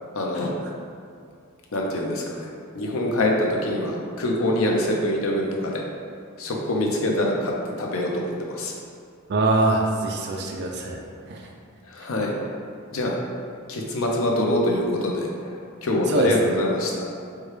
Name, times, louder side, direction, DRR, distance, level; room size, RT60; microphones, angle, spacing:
voice 1, 0.1-0.5 1.7-2.5 2.7-5.8 6.4-8.7 11.9-12.3 12.9-13.2 13.7-15.3 15.8-17.1, left 1 dB, 65° left, -1 dB, 0.6 m, -24 dB
voice 2, 9.3-11.0 11.3-11.4 16.1-16.3, right 2 dB, 50° right, 1 dB, 0.4 m, -22 dB
4.6 x 2.2 x 3.2 m, 2.3 s
head